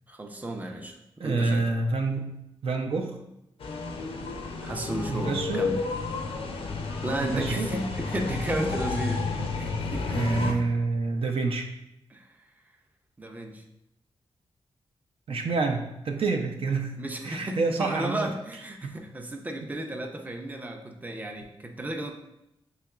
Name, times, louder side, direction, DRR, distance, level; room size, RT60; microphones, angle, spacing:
voice 1, 0.1-1.6 4.6-5.8 7.0-9.2 9.6-10.4 12.1-12.4 13.2-13.6 17.0-22.1, right 1 dB, 15° right, 3 dB, 0.5 m, -33 dB
voice 2, 1.2-2.3 2.6-3.1 5.1-5.6 7.2-7.7 10.1-11.7 15.3-17.0 17.2-18.3, right 3 dB, 70° right, 3 dB, 0.5 m, -27 dB
sound 1, 3.6-10.5, left 4 dB, 70° left, 0.5 m, -31 dB
5.6 x 2.9 x 2.3 m, 0.86 s
cardioid pair, 70°, 10 cm